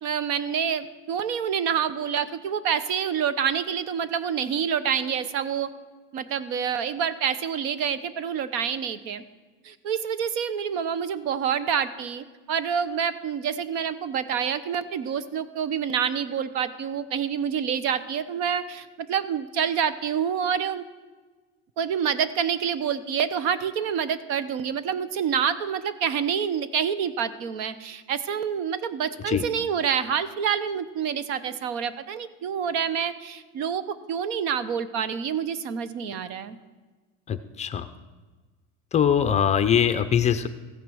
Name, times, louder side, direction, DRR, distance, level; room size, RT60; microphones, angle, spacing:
voice 1, 0.0-5.7 6.1-9.2 9.6-20.8 21.8-36.6, right 7 dB, 65° right, 14 dB, 0.9 m, -27 dB
voice 2, 37.3-37.9 38.9-40.5, left 8 dB, 25° left, 9 dB, 0.4 m, -22 dB
15.0 x 9.2 x 6.3 m, 1.3 s
cardioid pair, 160°, 30 cm